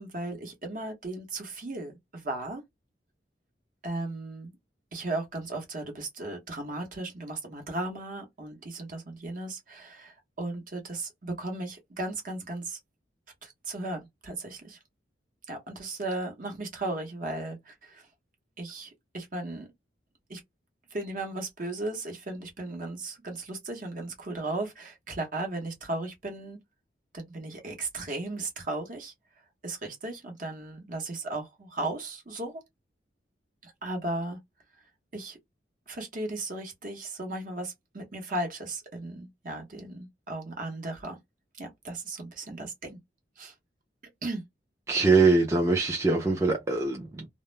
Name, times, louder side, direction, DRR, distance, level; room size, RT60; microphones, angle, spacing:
voice 1, 0.0-2.6 3.8-4.6 4.9-12.8 13.4-14.8 15.5-18.1 18.6-19.7 20.3-20.4 20.9-26.6 27.1-29.1 29.6-32.6 33.6-34.4 35.1-35.4 35.9-41.2 41.6-43.0 43.4-43.5 44.2-44.4, right 2 dB, 50° right, 0.8 m, -36 dB
voice 2, 44.9-47.3, right 3 dB, 15° right, 0.4 m, -23 dB
2.2 x 2.0 x 3.0 m
head